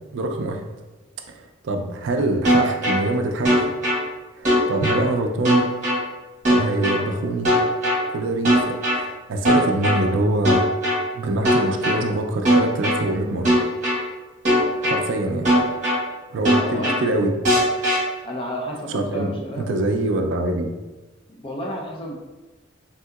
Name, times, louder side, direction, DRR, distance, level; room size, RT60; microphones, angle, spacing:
voice 1, 0.1-0.6 1.3-3.6 4.4-5.7 6.5-7.5 8.1-10.6 11.1-13.5 14.8-15.5 16.3-17.3 18.9-20.7, right 2 dB, 70° right, 4 dB, 0.4 m, -24 dB
sound 1, 2.4-3.0 3.4-4.0 4.4-5.0 5.4-6.0 6.4-7.0 7.4-8.0 8.4-9.0 9.4-10.0 10.4-11.0 11.4-12.0 12.4-13.0 13.4-14.0 14.4-15.0 15.4-16.0 16.4-17.0 17.4-18.0, equal, 40° right, 1.1 m, -18 dB
voice 2, 16.6-17.1 18.2-19.7 21.3-22.1, equal, 25° left, -1 dB, 0.5 m, -31 dB
3.5 x 2.7 x 2.3 m, 1.1 s
head